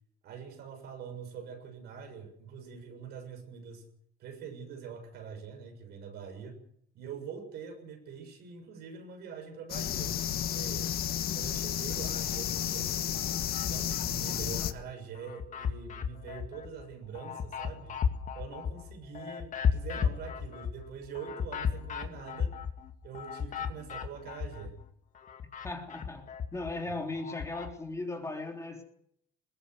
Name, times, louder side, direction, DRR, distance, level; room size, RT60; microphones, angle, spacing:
voice 1, 0.2-3.9 4.2-6.6 6.9-10.9 11.3-13.2 13.7-18.0 18.3-22.5 23.0-24.8, right 6 dB, 75° right, 7.0 m, -44 dB
sound 1, 9.7-14.7, left 11 dB, 65° left, 1.4 m, -32 dB
sound 2, 11.9-12.7 13.1-14.7 15.1-24.9 25.1-27.7, left 7 dB, 50° left, 2.3 m, -35 dB
voice 2, 25.6-26.2 26.5-28.8, left 2 dB, 15° left, 3.4 m, -37 dB
21.0 x 16.0 x 8.2 m
cardioid pair, 110°, 17 cm